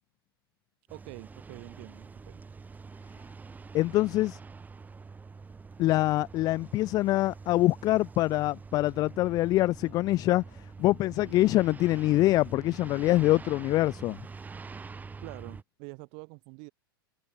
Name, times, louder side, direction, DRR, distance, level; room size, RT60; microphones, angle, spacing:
sound 1, 0.9-15.6, right 4 dB, 15° right, 4.3 m, -46 dB
voice 1, 0.9-2.4 11.2-11.5 15.2-16.7, right 40 dB or more, 45° right, 2.3 m, -46 dB
voice 2, 3.7-4.4 5.8-10.4 10.8-14.2, left 17 dB, 30° left, 0.5 m, -25 dB
figure-of-eight pair, 95°, 13 cm